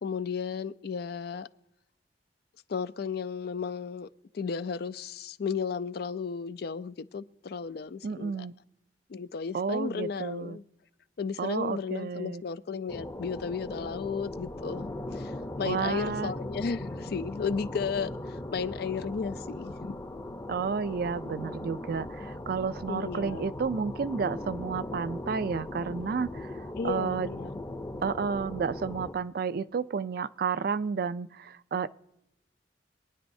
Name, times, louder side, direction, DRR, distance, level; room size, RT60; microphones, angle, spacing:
voice 1, 0.0-1.5 2.7-4.1 4.3-8.5 9.1-10.6 11.2-20.0 22.8-23.5 26.8-27.5, left 5 dB, 60° left, 0.4 m, -34 dB
voice 2, 8.0-8.5 9.5-10.6 11.4-12.4 15.6-16.3 20.5-27.3 28.0-31.9, right 5 dB, 55° right, 0.4 m, -31 dB
sound 1, 12.9-29.1, left 1 dB, 20° left, 0.7 m, -39 dB
24.0 x 9.7 x 2.7 m
head